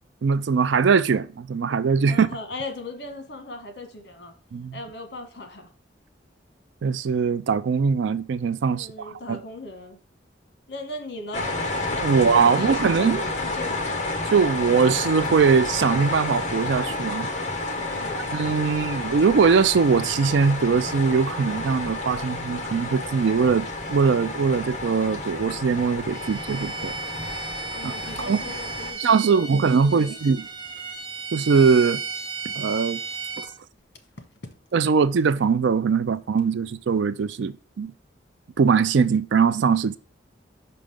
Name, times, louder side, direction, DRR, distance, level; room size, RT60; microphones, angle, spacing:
voice 1, 0.2-2.3 4.5-4.8 6.8-9.4 12.0-13.2 14.3-17.3 18.1-27.0 27.8-28.4 29.0-30.5 31.3-32.0 32.5-33.0 33.4-33.5 34.7-37.9 38.6-40.0, right 5 dB, 75° right, 0.4 m, -21 dB
voice 2, 2.1-4.3 4.7-5.7 8.7-10.0 10.7-11.5 12.1-14.0 17.8-18.3 27.7-30.2, left 2 dB, 60° left, 1.3 m, -38 dB
sound 1, 11.3-28.9, left 2 dB, 40° left, 1.0 m, -30 dB
Bowed string instrument, 26.1-33.5, right 5 dB, 25° right, 0.7 m, -35 dB
5.5 x 5.1 x 3.5 m
head